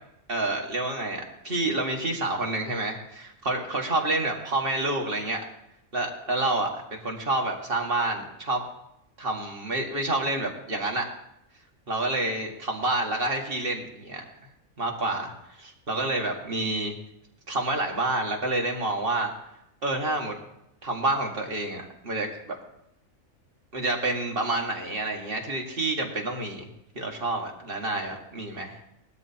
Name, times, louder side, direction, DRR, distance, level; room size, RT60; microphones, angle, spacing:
voice 1, 0.3-5.4 5.9-8.6 9.2-11.1 11.9-14.2 14.8-15.3 15.9-16.9 17.5-19.3 19.8-20.4 20.8-22.6 23.7-26.7 27.0-28.8, right 2 dB, 45° right, 1 dB, 2.0 m, -28 dB
19.0 x 12.5 x 2.9 m, 0.80 s
omnidirectional pair, 1.4 m